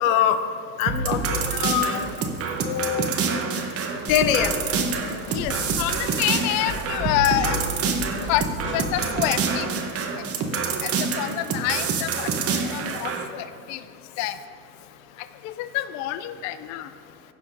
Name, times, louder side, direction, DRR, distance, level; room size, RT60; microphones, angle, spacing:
voice 1, 0.0-0.4 0.8-2.0 2.6-3.1 4.1-4.5 5.5-5.6, left 10 dB, 80° left, 10 dB, 0.7 m, -23 dB
sound 1, 0.9-13.2, right 5 dB, 35° right, 0.9 m, -27 dB
Drum kit / Snare drum, 4.1-9.3, left 1 dB, 30° left, 1.5 m, -36 dB
voice 2, 5.3-7.6 8.3-9.7 10.2-10.3 10.8-13.8 14.2-14.4 15.4-16.9, left 13 dB, 45° left, 12 dB, 0.4 m, -27 dB
15.0 x 5.7 x 2.7 m, 2.2 s
hypercardioid pair, 100°, 40 cm